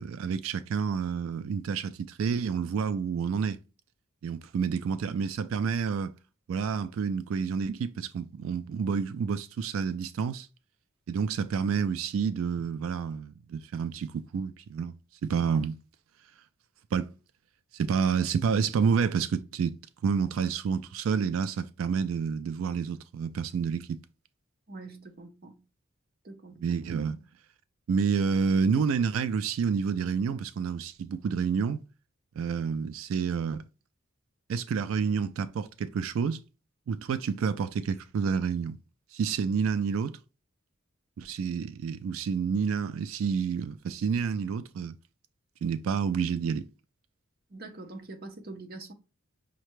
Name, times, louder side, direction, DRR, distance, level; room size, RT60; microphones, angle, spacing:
voice 1, 0.0-3.6 4.2-6.1 6.5-10.5 11.1-15.0 15.2-15.8 16.9-17.1 17.7-19.8 20.0-24.0 26.6-27.2 27.9-31.8 32.4-33.7 34.5-36.4 36.9-38.8 39.1-40.2 41.2-45.0 45.6-46.7, right 6 dB, 70° right, 0.3 m, -29 dB
voice 2, 24.7-25.6 26.2-26.8 47.5-48.9, right 2 dB, 45° right, 0.7 m, -44 dB
5.7 x 2.2 x 3.1 m
head